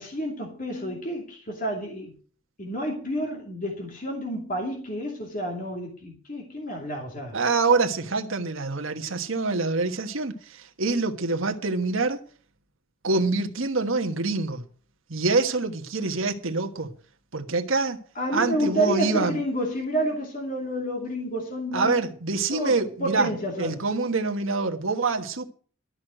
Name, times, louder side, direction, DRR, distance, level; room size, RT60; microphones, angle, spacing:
voice 1, 0.0-2.1 2.6-7.4 18.2-22.1 22.5-23.8, right 1 dB, 40° left, 2.6 m, -29 dB
voice 2, 7.3-12.2 13.0-14.6 15.1-16.9 17.3-18.0 18.3-19.4 21.7-23.3 23.6-25.4, right 3 dB, 75° right, 1.4 m, -25 dB
12.5 x 6.4 x 7.8 m
head